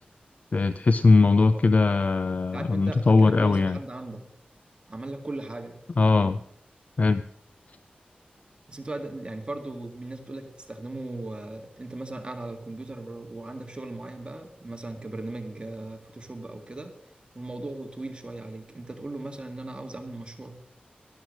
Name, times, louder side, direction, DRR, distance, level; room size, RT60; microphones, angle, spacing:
voice 1, 0.5-3.8 6.0-6.4 7.0-7.2, left 3 dB, 50° left, 13 dB, 0.5 m, -20 dB
voice 2, 2.5-4.2 4.9-5.8 8.7-16.9 17.3-20.6, right 2 dB, 30° right, 5 dB, 1.9 m, -37 dB
12.5 x 12.0 x 6.3 m, 0.73 s
wide cardioid pair, 110°, 3 cm